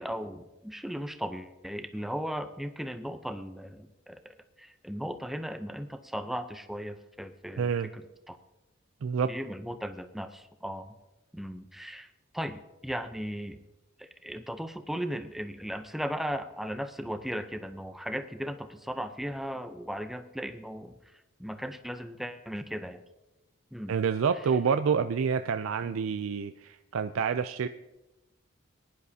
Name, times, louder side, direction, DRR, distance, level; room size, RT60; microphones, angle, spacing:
voice 1, 0.0-8.4 9.3-10.9 11.3-12.1 12.3-13.6 14.0-20.9 21.4-23.0 23.7-24.0, equal, ahead, 8 dB, 0.6 m, -37 dB
voice 2, 7.6-7.9 9.0-9.3 23.9-27.7, right 6 dB, 85° right, 9 dB, 0.4 m, -28 dB
21.5 x 10.5 x 2.8 m, 1.0 s
head